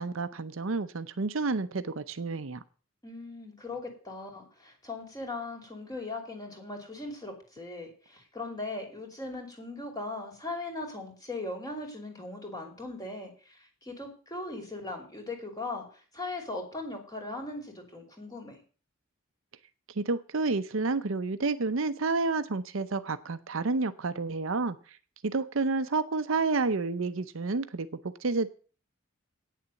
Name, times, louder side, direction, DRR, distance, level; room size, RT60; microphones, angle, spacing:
voice 1, 0.0-2.6 20.0-25.0 25.2-28.5, right 3 dB, 65° right, 12 dB, 0.7 m, -30 dB
voice 2, 3.0-18.6, left 2 dB, 15° left, 2 dB, 2.8 m, -39 dB
9.3 x 6.9 x 7.6 m, 0.39 s
head